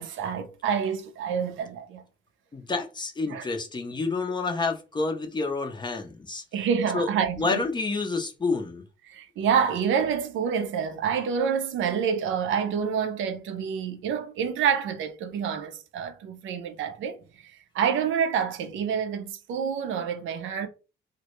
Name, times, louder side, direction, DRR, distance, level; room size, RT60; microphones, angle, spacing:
voice 1, 0.0-2.0 3.3-3.5 6.5-7.6 9.1-20.7, right 7 dB, 75° right, 0.5 m, -28 dB
voice 2, 2.5-6.4 6.9-7.1 7.4-8.8, left 3 dB, 20° left, 0.5 m, -29 dB
2.1 x 2.1 x 2.9 m
cardioid pair, 90°, 20 cm